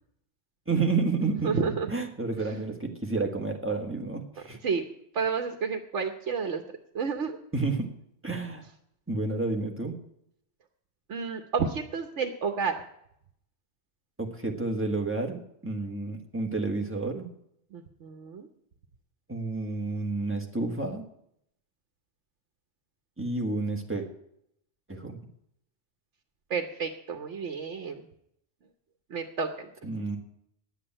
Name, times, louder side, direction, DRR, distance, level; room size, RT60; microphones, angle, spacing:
voice 1, 0.7-1.5 1.9-4.6 7.5-7.9 8.2-8.6 9.1-10.0 14.2-17.3 19.3-21.0 23.2-24.1 24.9-25.2 29.8-30.2, right 3 dB, 10° right, 2 dB, 1.5 m, -30 dB
voice 2, 1.4-1.9 4.6-4.9 5.1-7.4 11.1-12.8 17.7-18.5 26.5-28.0 29.1-29.7, right 5 dB, 80° right, 5 dB, 1.2 m, -30 dB
10.0 x 8.2 x 8.7 m, 0.74 s
omnidirectional pair, 1.2 m